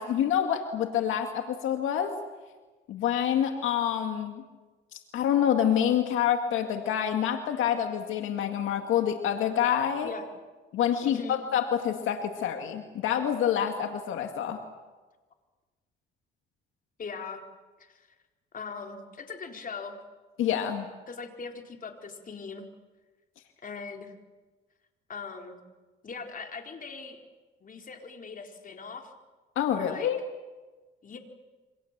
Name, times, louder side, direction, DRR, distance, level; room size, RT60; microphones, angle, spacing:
voice 1, 0.0-2.1 2.9-4.4 4.9-10.1 10.7-14.6 20.4-20.9 29.6-30.2, left 9 dB, 85° left, 5 dB, 2.1 m, -27 dB
voice 2, 11.0-11.4 17.0-17.4 17.8-18.1 18.5-20.0 21.1-22.7 23.6-24.1 25.1-25.6 26.0-27.2 27.6-29.1 29.7-30.1 31.0-31.2, left 5 dB, 45° left, 3 dB, 4.2 m, -40 dB
28.0 x 25.5 x 7.5 m, 1.3 s
cardioid pair, 90°, 20 cm